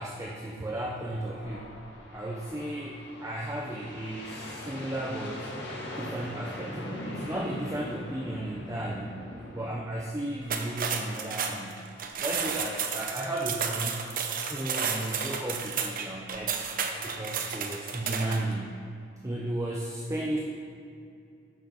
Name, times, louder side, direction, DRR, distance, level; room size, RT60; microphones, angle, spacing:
voice 1, 0.0-1.7 2.1-5.5 6.0-9.2 9.5-11.8 12.2-14.0 14.5-16.6 17.0-18.9 19.2-20.4, right 1 dB, 15° right, -3 dB, 0.7 m, -34 dB
sound 1, 1.1-9.7, left 1 dB, 70° left, 1.9 m, -41 dB
sound 2, 10.4-18.5, right 6 dB, 50° right, 0.8 m, -32 dB
9.1 x 5.8 x 6.1 m, 2.5 s
head